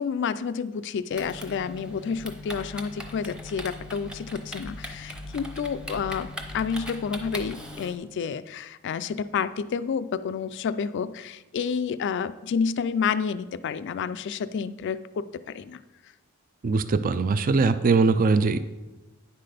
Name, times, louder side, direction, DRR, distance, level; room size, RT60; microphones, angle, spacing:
voice 1, 0.0-15.8, left 6 dB, 55° left, 14 dB, 0.4 m, -30 dB
Typing, 1.1-7.9, left 1 dB, 5° right, 0.8 m, -39 dB
voice 2, 16.6-18.6, right 4 dB, 40° right, 12 dB, 0.4 m, -21 dB
9.7 x 5.8 x 5.0 m, 1.1 s
head